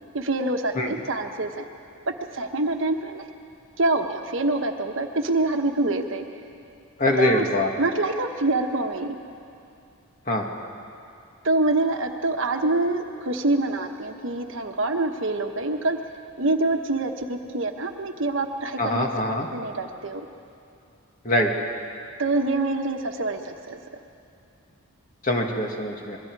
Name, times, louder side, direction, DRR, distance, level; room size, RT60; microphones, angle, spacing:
voice 1, 0.1-1.7 2.1-3.3 3.8-6.2 7.2-7.4 7.8-9.2 11.4-16.0 16.4-19.1 19.5-20.2 22.2-23.8, right 2 dB, 60° right, 5 dB, 1.2 m, -25 dB
voice 2, 7.0-7.7 10.3-10.5 18.8-19.5 21.2-21.5 25.2-26.2, left 1 dB, 35° left, 1 dB, 1.9 m, -23 dB
26.5 x 22.0 x 4.7 m, 2.5 s
head